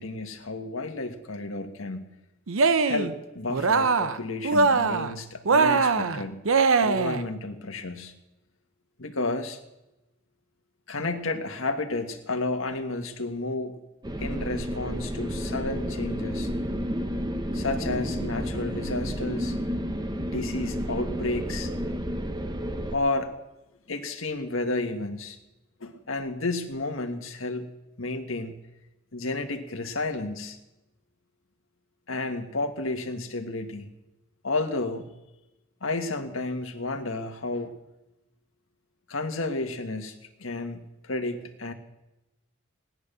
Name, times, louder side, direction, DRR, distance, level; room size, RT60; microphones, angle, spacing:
voice 1, 0.0-2.0 2.8-6.4 6.8-8.1 9.0-9.6 10.9-13.7 14.2-16.5 17.5-19.6 20.3-21.7 22.9-23.3 23.9-25.4 25.8-27.7 28.0-28.6 29.1-30.6 32.1-33.9 34.4-35.0 35.8-37.7 39.1-41.7, left 2 dB, 85° left, 6 dB, 1.6 m, -31 dB
Cheering, 2.5-3.1 3.5-4.2 4.4-5.1 5.5-7.2, right 4 dB, 85° right, 0.8 m, -22 dB
sound 1, 14.0-23.0, equal, 20° right, 0.9 m, -31 dB
17.5 x 11.0 x 6.8 m, 0.99 s
head